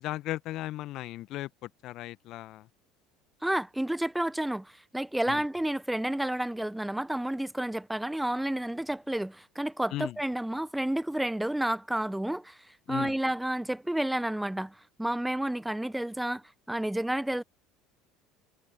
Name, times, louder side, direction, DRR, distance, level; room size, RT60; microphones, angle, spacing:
voice 1, 0.0-2.7 5.3-5.4 9.9-10.2 12.9-13.2, left 15 dB, 50° left, 1.4 m, -36 dB
voice 2, 3.4-12.6 12.9-16.4 16.7-17.4, right 1 dB, 5° right, 1.2 m, -30 dB
figure-of-eight pair, 65°, 0 cm